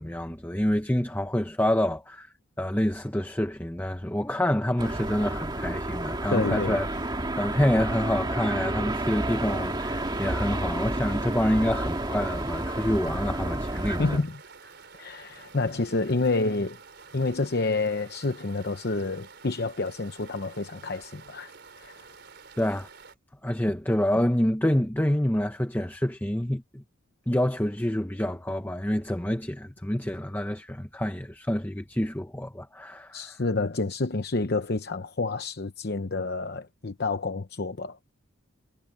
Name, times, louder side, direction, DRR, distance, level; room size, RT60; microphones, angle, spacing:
voice 1, 0.0-6.9 7.4-14.2 22.6-22.9 23.4-26.8 27.3-33.4, left 1 dB, 10° left, 0.9 m, -27 dB
sound 1, 4.8-14.2, right 1 dB, 20° right, 2.0 m, -30 dB
voice 2, 6.3-6.8 14.0-14.4 15.0-16.8 17.1-22.1 33.1-38.0, left 3 dB, 50° left, 0.8 m, -29 dB
sound 2, 8.9-23.1, right 5 dB, 55° right, 4.6 m, -50 dB
head